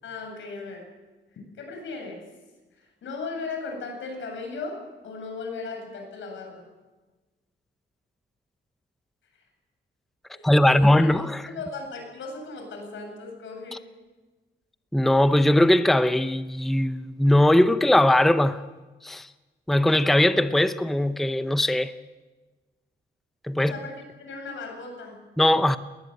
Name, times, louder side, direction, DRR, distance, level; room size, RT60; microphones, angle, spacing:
voice 1, 0.0-0.9 1.3-2.3 2.8-6.6 10.3-11.1 11.4-13.8 23.6-23.9 24.2-25.2, left 4 dB, 80° left, 7.7 m, -37 dB
voice 2, 10.4-11.5 14.9-18.6 19.0-19.3 19.7-21.9 23.5-23.7 25.4-25.8, left 1 dB, ahead, 0.6 m, -20 dB
20.5 x 19.0 x 9.4 m
wide cardioid pair, 135°, 20 cm